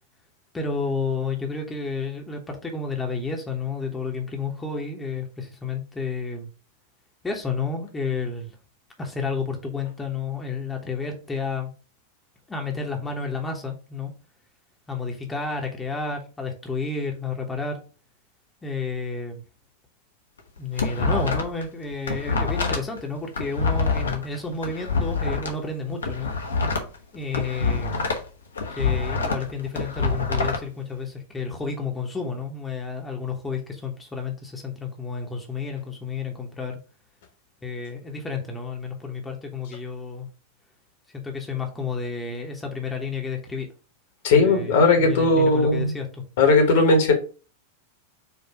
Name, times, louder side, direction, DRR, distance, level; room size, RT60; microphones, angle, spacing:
voice 1, 0.5-6.5 7.2-8.5 9.0-11.7 12.5-14.1 14.9-17.8 18.6-19.4 20.6-26.3 27.1-27.9 28.8-36.8 37.6-40.3 41.1-43.7 44.3-46.1, left 4 dB, 10° left, 1 dB, 0.9 m, -31 dB
sound 1, 20.4-21.6 21.9-25.5 25.9-28.3 28.6-30.6, left 4 dB, 70° left, 0.8 m, -26 dB
voice 2, 44.2-45.9 46.4-47.1, left 3 dB, 55° left, 4 dB, 1.1 m, -18 dB
4.5 x 2.5 x 4.6 m, 0.35 s
figure-of-eight pair, 90°, 0 cm